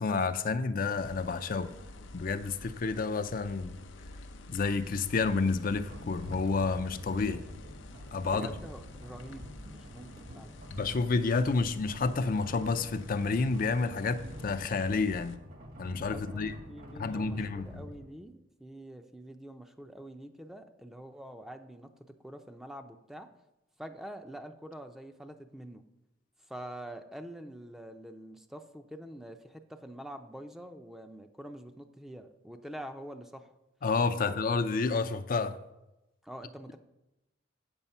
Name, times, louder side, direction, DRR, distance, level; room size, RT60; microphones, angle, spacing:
voice 1, 0.0-1.7 2.1-3.8 4.5-7.4 8.1-8.5 10.7-15.4 15.8-16.5 17.0-17.8 33.8-35.6, left 4 dB, 50° left, 10 dB, 0.5 m, -30 dB
sound 1, 0.9-15.4, left 2 dB, 85° left, 0.7 m, -49 dB
sound 2, 5.9-18.1, right 1 dB, 50° right, 1.4 m, -48 dB
voice 2, 8.2-10.6 16.1-23.3 23.8-25.8 26.5-33.5 34.1-34.4 36.2-36.8, right 1 dB, ahead, 6 dB, 0.5 m, -46 dB
8.3 x 7.1 x 5.5 m, 0.95 s
head